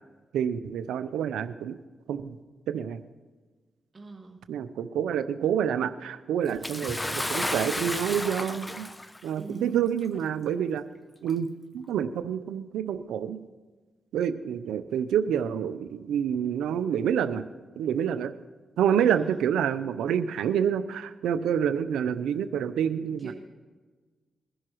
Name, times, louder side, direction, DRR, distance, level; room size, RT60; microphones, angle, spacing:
voice 1, 0.3-1.8 2.1-2.4 2.7-3.0 4.5-8.9 9.2-10.8 11.2-11.5 11.7-13.4 14.1-17.4 17.8-18.3 18.8-23.3, right 8 dB, 90° right, 11 dB, 0.5 m, -28 dB
voice 2, 3.9-4.4 9.4-9.9 19.0-19.3 23.2-23.3, right 2 dB, 40° right, -1 dB, 1.9 m, -42 dB
Bathtub (filling or washing) / Splash splatter, 6.6-9.2 10.2-10.3 11.2-11.3, left 1 dB, 15° left, 0.7 m, -32 dB
22.0 x 11.0 x 3.1 m, 1.3 s
supercardioid pair, 55°, 0 cm